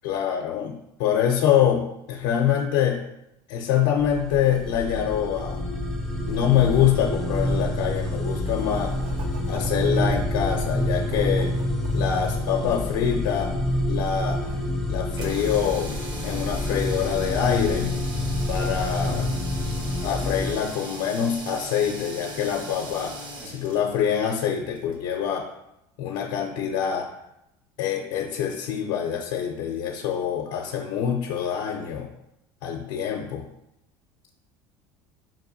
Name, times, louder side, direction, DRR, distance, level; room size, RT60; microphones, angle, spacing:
voice 1, 0.0-3.0 3.5-5.6 6.3-8.9 9.5-11.5 11.9-13.5 13.9-14.6 14.9-16.0 16.2-17.9 18.5-19.3 20.0-23.2 23.5-25.5 26.0-27.1 27.8-32.1 32.6-33.5, left 9 dB, 75° left, 1 dB, 0.5 m, -25 dB
sound 1, 4.0-20.5, left 1 dB, ahead, 0.5 m, -27 dB
Writing, 6.9-7.1 7.6-12.0, right 2 dB, 65° right, 0.5 m, -39 dB
sound 2, 15.1-25.2, equal, 45° right, 1.0 m, -38 dB
5.1 x 2.6 x 2.6 m, 0.83 s
supercardioid pair, 110°, 11 cm